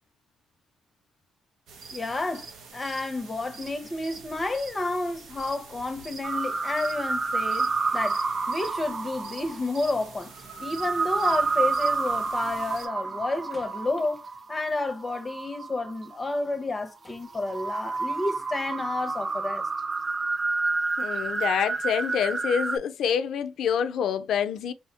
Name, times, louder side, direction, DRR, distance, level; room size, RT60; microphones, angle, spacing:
sound 1, 1.7-12.9, right 4 dB, 75° right, 0.6 m, -46 dB
voice 1, 1.9-8.2 8.5-10.3 10.6-14.2 14.5-19.7, left 2 dB, 30° left, 0.6 m, -30 dB
sound 2, 6.2-16.3 16.8-22.8, right 4 dB, 35° right, 0.5 m, -29 dB
voice 2, 21.0-24.7, left 8 dB, 70° left, 0.3 m, -27 dB
3.0 x 2.1 x 2.7 m
supercardioid pair, 55°, 0 cm